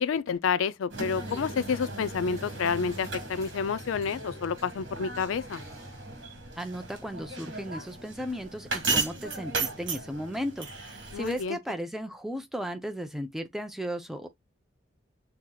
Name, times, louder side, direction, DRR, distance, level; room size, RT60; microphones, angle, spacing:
voice 1, 0.0-5.6 11.1-11.6, left 6 dB, 75° left, 0.4 m, -29 dB
sound 1, 0.9-11.5, right 3 dB, 60° right, 1.7 m, -36 dB
sound 2, 1.3-8.5, right 1 dB, 15° right, 2.1 m, -56 dB
voice 2, 6.6-14.3, equal, ahead, 0.5 m, -35 dB
6.5 x 2.8 x 2.3 m
head